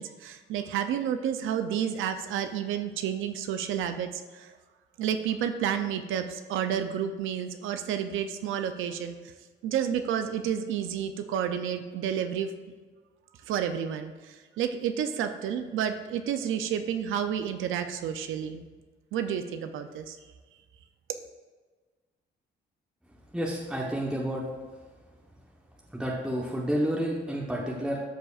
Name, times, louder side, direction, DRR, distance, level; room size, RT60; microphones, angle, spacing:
voice 1, 0.0-4.6 5.0-9.2 9.6-12.5 13.5-18.6 19.1-20.2, right 9 dB, 85° right, 8 dB, 0.5 m, -30 dB
voice 2, 23.3-24.5 25.9-28.0, equal, 5° right, -3 dB, 1.0 m, -30 dB
13.0 x 5.0 x 2.4 m, 1.4 s
cardioid pair, 90°, 20 cm